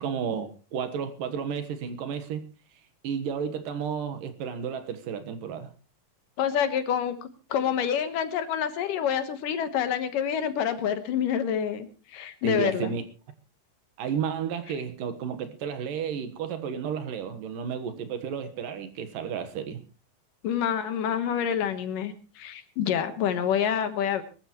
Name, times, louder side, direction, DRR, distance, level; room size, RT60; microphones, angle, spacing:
voice 1, 0.0-2.4 3.0-5.7 12.4-13.0 14.0-19.8, right 7 dB, 75° right, 2.9 m, -32 dB
voice 2, 6.4-12.9 20.4-24.2, left 8 dB, 70° left, 2.8 m, -27 dB
23.0 x 13.5 x 3.1 m
omnidirectional pair, 4.1 m